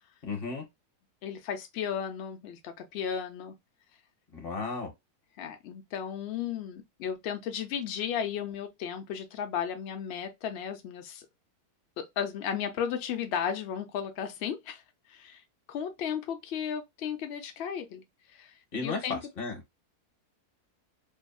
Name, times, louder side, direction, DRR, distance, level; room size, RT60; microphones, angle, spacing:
voice 1, 0.2-0.6 4.3-4.9 18.7-19.6, left 4 dB, 45° left, 0.9 m, -34 dB
voice 2, 1.2-3.6 5.4-11.3 12.0-14.8 15.1-15.4 15.7-18.0 18.3-18.5 18.8-19.2, left 8 dB, 65° left, 0.6 m, -34 dB
2.7 x 2.5 x 2.2 m
omnidirectional pair, 1.6 m